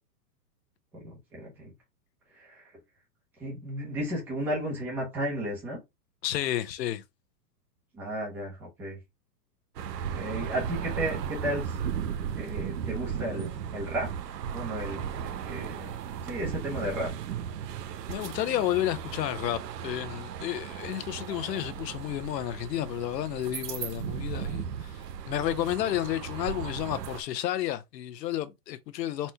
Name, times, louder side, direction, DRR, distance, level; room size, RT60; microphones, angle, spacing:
voice 1, 0.9-1.7 2.3-2.7 3.4-5.8 7.9-9.0 10.0-11.8 12.3-14.1 14.5-16.0 16.2-17.1, equal, 5° right, 0.6 m, -34 dB
voice 2, 6.2-7.0 18.1-29.3, left 13 dB, 90° left, 0.8 m, -31 dB
sound 1, 9.8-27.2, right 8 dB, 90° right, 0.8 m, -36 dB
4.2 x 2.2 x 4.4 m
supercardioid pair, 170°, 48 cm